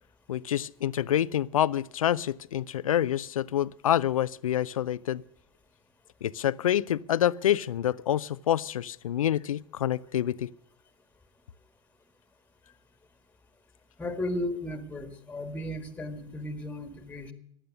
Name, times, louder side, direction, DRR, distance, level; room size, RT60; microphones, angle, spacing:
voice 1, 0.3-5.2 6.2-10.5, left 11 dB, 85° left, 0.5 m, -27 dB
voice 2, 14.0-17.3, left 1 dB, 10° left, 1.7 m, -35 dB
15.0 x 11.5 x 6.5 m
hypercardioid pair, 95°, 17 cm